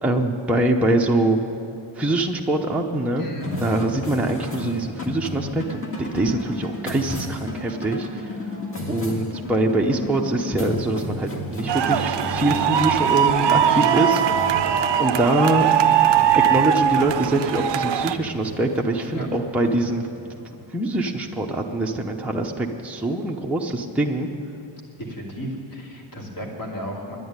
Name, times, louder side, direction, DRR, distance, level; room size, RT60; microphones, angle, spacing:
voice 1, 0.0-1.4 2.0-3.3 3.6-8.4 8.9-14.6 15.0-15.7 16.3-20.1 20.7-24.3, right 2 dB, 5° right, 0 dB, 0.7 m, -23 dB
voice 2, 3.2-3.5 13.6-14.0 19.1-19.3 25.0-27.2, right 1 dB, 45° left, -3 dB, 2.7 m, -33 dB
sound 1, 3.4-22.0, left 1 dB, 25° left, 1.8 m, -34 dB
sound 2, 11.7-18.1, right 9 dB, 60° right, 0.6 m, -20 dB
10.5 x 10.5 x 9.5 m, 2.9 s
wide cardioid pair, 170°, 48 cm